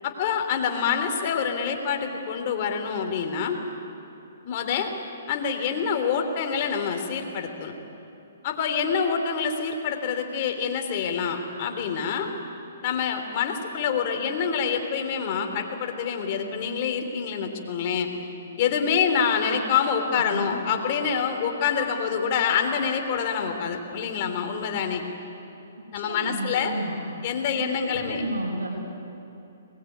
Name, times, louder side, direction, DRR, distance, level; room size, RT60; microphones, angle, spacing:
voice 1, 0.0-3.6 4.4-4.9 5.3-7.7 8.4-12.3 12.8-18.1 18.6-25.0 25.9-26.7 27.2-28.2, left 7 dB, 40° left, 4 dB, 3.4 m, -26 dB
voice 2, 25.9-27.0 27.5-28.7, right 1 dB, 90° right, -3 dB, 5.4 m, -31 dB
23.0 x 21.0 x 9.5 m, 2.9 s
hypercardioid pair, 145°, 0 cm